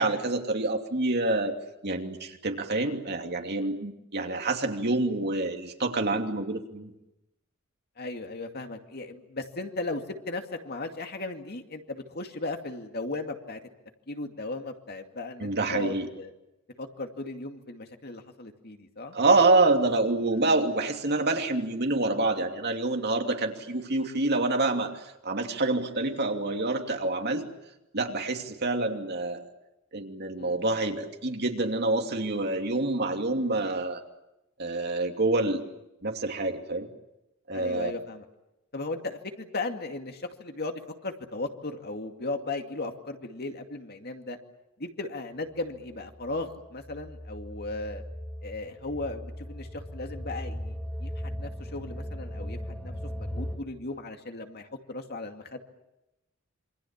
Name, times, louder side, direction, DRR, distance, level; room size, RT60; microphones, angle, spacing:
voice 1, 0.0-1.5 1.8-6.9 15.4-16.1 19.1-24.9 25.2-27.5 27.9-29.4 29.9-34.0 34.6-35.6 36.0-36.9 37.5-37.9, right 2 dB, 50° right, 4 dB, 2.8 m, -27 dB
voice 2, 8.0-13.6 14.1-16.3 16.8-19.2 30.4-30.6 37.5-38.3 38.7-44.4 44.8-48.0 48.4-51.1 51.4-52.9 53.2-55.6, left 2 dB, 50° left, 5 dB, 2.4 m, -36 dB
sound 1, 45.9-53.6, equal, 5° left, 3.5 m, -38 dB
27.5 x 25.0 x 7.4 m, 0.91 s
head